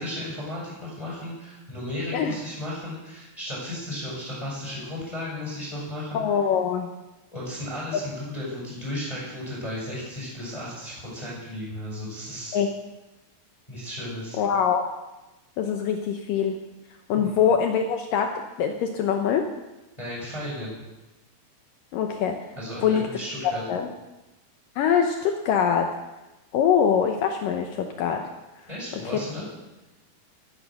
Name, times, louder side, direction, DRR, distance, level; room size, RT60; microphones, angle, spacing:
voice 1, 0.0-6.2 7.3-12.6 13.7-14.4 17.1-17.4 20.0-20.8 22.6-23.6 28.7-29.5, left 1 dB, 10° left, -6 dB, 6.2 m, -34 dB
voice 2, 6.1-6.9 12.5-12.7 14.4-14.8 15.6-16.6 17.1-19.5 21.9-22.4 22.8-23.1 23.4-23.9 24.8-25.9 26.5-28.3, left 7 dB, 75° left, 5 dB, 2.1 m, -23 dB
14.0 x 10.5 x 6.3 m, 1.0 s
omnidirectional pair, 4.8 m